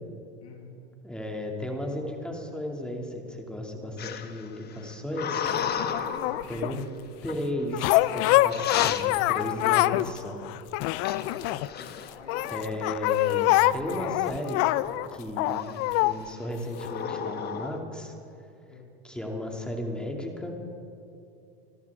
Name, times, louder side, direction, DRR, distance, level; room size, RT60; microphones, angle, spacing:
voice 1, 0.4-0.8 5.5-6.9 10.9-11.5 12.0-12.6 18.7-18.9, left 3 dB, 90° left, 2 dB, 2.1 m, -46 dB
voice 2, 1.0-5.5 6.5-6.8 7.2-10.4 11.9-12.0 12.5-14.6 15.1-18.1 19.0-20.5, left 1 dB, 5° left, 1 dB, 2.5 m, -35 dB
sound 1, 4.0-6.5 7.3-7.6 8.2-8.3 8.5-9.0 11.0-12.7 13.1-13.6 13.9-15.0 15.5-15.9 16.7-17.8, left 8 dB, 30° left, 1.1 m, -34 dB
sound 2, 5.4-6.8 7.7-10.1 10.4-11.9 12.3-16.2 16.8-16.9, left 17 dB, 45° left, 0.5 m, -25 dB
26.0 x 13.5 x 3.6 m, 2.6 s
hypercardioid pair, 110°, 33 cm